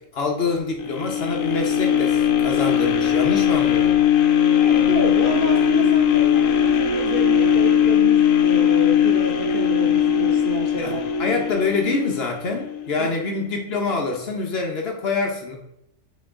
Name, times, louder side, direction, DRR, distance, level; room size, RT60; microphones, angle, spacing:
voice 1, 0.1-3.9 10.7-15.5, left 3 dB, 55° left, 2 dB, 0.9 m, -26 dB
sound 1, 0.8-12.9 13.4-13.5, left 9 dB, 75° left, 1.0 m, -19 dB
voice 2, 4.6-11.4 13.0-13.1, right 2 dB, 50° right, 1 dB, 0.8 m, -29 dB
8.2 x 3.1 x 3.6 m, 0.79 s
omnidirectional pair, 1.4 m